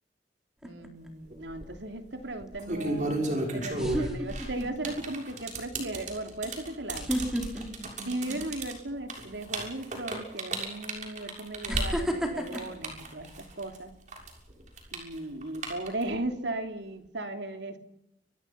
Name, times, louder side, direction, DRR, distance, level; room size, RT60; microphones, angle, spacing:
sound 1, 0.6-1.1 3.0-3.1 3.7-4.9 5.3-5.6 6.9-8.7 9.1-9.4 10.4-10.5 11.7-13.9 14.4-14.7, equal, 5° right, 4.0 m, -32 dB
voice 1, 0.6-7.1 8.0-13.9 14.9-17.8, right 2 dB, 85° right, 6 dB, 3.0 m, -37 dB
sound 2, 1.3-1.7 2.4-13.8 14.1-16.2, right 2 dB, 45° right, 6.8 m, -34 dB
29.5 x 23.0 x 5.9 m, 0.78 s
head